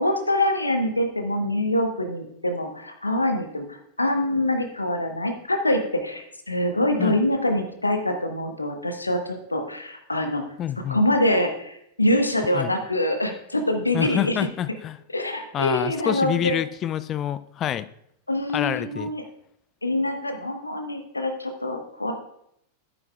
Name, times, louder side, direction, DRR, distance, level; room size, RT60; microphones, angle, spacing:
voice 1, 0.0-10.4 10.9-14.5 15.1-16.6 18.3-19.2 19.8-22.1, left 1 dB, 85° left, 5 dB, 1.0 m, -25 dB
voice 2, 10.6-11.0 12.5-12.7 13.9-15.0 15.5-17.9 18.5-19.1, left 10 dB, 30° left, 15 dB, 0.3 m, -27 dB
11.0 x 9.3 x 2.3 m, 0.74 s
figure-of-eight pair, 90°, 0 cm